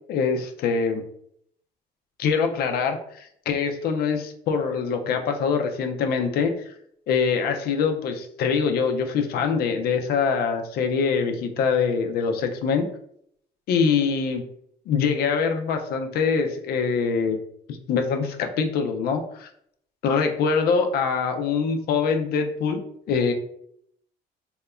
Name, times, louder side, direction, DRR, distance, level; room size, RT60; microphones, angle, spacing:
voice 1, 0.1-1.1 2.2-6.7 7.1-12.9 13.7-14.4 14.9-17.4 17.7-19.5 20.0-22.8 23.1-23.3, left 5 dB, 65° left, 5 dB, 0.5 m, -24 dB
2.8 x 2.1 x 2.4 m, 0.69 s
cardioid pair, 110°, 17 cm